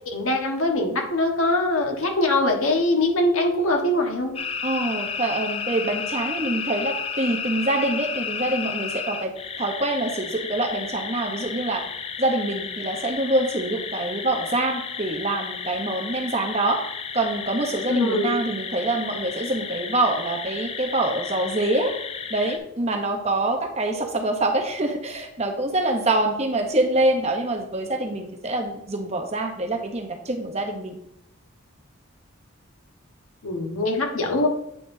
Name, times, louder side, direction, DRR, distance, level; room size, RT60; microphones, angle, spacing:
voice 1, 0.1-4.3 17.9-18.3 23.9-24.1 33.4-34.5, left 2 dB, 80° left, 2 dB, 1.3 m, -22 dB
sound 1, 4.4-22.6, left 6 dB, 25° left, 0.4 m, -33 dB
voice 2, 4.6-11.8 12.2-16.8 17.1-21.9 22.3-31.0, right 2 dB, 30° right, 4 dB, 0.8 m, -25 dB
8.5 x 5.7 x 2.7 m, 0.79 s
head